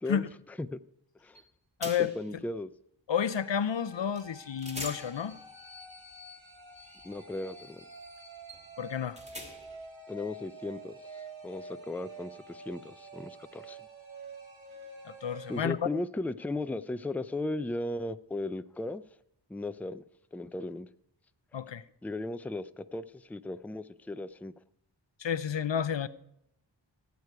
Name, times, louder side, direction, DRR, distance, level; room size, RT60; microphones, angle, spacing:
voice 1, 0.0-0.8 1.2-1.4 2.0-2.7 7.0-7.8 10.1-13.8 15.5-19.0 19.5-20.1 20.3-20.9 22.0-24.5, left 2 dB, 5° left, 13 dB, 0.4 m, -36 dB
sound 1, 1.3-1.5 1.8-2.3 4.1-4.3 4.6-9.9, left 1 dB, 15° right, 2.5 m, -46 dB
voice 2, 1.8-2.1 3.1-5.4 8.8-9.2 15.0-15.8 21.5-21.8 25.2-26.1, left 8 dB, 70° left, 15 dB, 0.6 m, -31 dB
sound 2, 3.1-15.7, right 2 dB, 85° right, 2.1 m, -49 dB
18.0 x 8.2 x 4.7 m, 0.75 s
wide cardioid pair, 45°, 46 cm